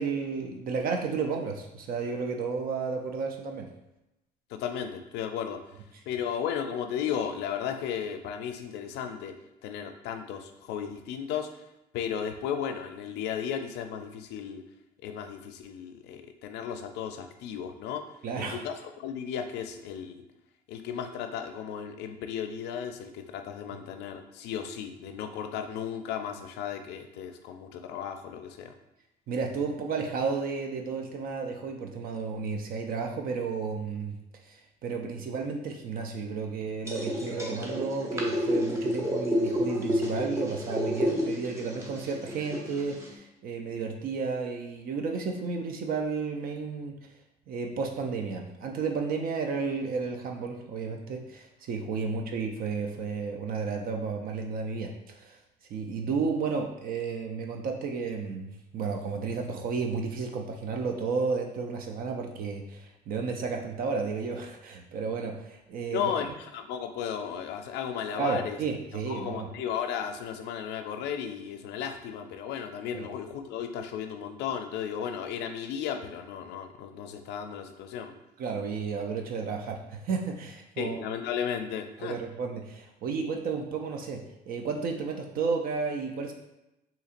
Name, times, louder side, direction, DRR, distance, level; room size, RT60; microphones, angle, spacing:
voice 1, 0.0-3.7 18.2-18.6 29.3-34.2 34.4-47.0 47.5-55.4 55.7-66.1 68.2-69.5 72.9-73.1 78.4-81.0 82.0-86.3, right 5 dB, 60° right, 2 dB, 0.5 m, -32 dB
voice 2, 4.5-5.6 6.1-9.3 9.6-11.5 11.9-14.6 15.0-18.0 18.4-20.2 20.7-28.7 52.0-52.1 65.9-68.6 68.9-78.1 80.8-82.2, left 8 dB, 80° left, 6 dB, 0.4 m, -35 dB
sound 1, 36.9-43.2, equal, 15° right, 0.7 m, -30 dB
4.1 x 2.8 x 2.5 m, 0.92 s
cardioid pair, 110°, 17 cm